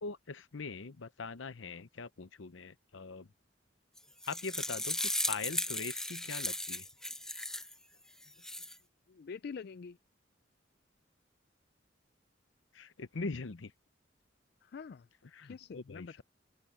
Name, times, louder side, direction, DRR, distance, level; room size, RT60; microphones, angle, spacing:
voice 1, 0.0-3.3 4.3-6.9 12.7-13.7 15.3-16.2, left 4 dB, 90° left, 0.8 m, -42 dB
sound 1, 4.0-7.7 8.2-8.7, left 1 dB, 5° left, 0.6 m, -36 dB
voice 2, 9.1-10.0 14.6-15.1 15.4-16.2, left 5 dB, 55° left, 0.4 m, -45 dB
open air
head